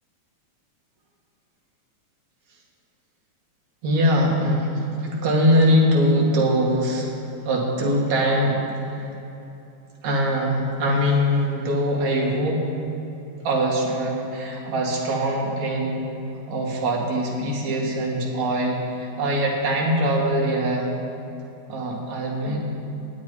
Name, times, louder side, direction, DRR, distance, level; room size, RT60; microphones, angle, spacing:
voice 1, 3.8-7.1 7.4-8.6 8.9-9.1 10.0-12.6 13.4-16.0 16.5-20.9 21.7-22.6, equal, 70° right, -3 dB, 3.2 m, -22 dB
9.2 x 8.8 x 9.7 m, 3.0 s
omnidirectional pair, 3.3 m